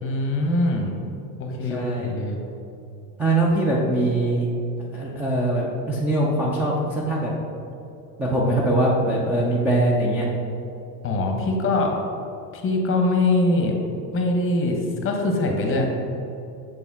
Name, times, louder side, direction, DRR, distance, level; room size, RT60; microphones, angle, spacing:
voice 1, 0.0-0.9 1.4-2.4 11.0-11.9 12.5-13.7 14.1-15.9, left 2 dB, 25° left, 1 dB, 0.9 m, -23 dB
voice 2, 1.7-2.1 3.2-4.5 4.9-7.3 8.2-10.3, right 1 dB, 5° right, -5 dB, 0.4 m, -22 dB
6.6 x 4.2 x 3.6 m, 2.7 s
supercardioid pair, 120°, 47 cm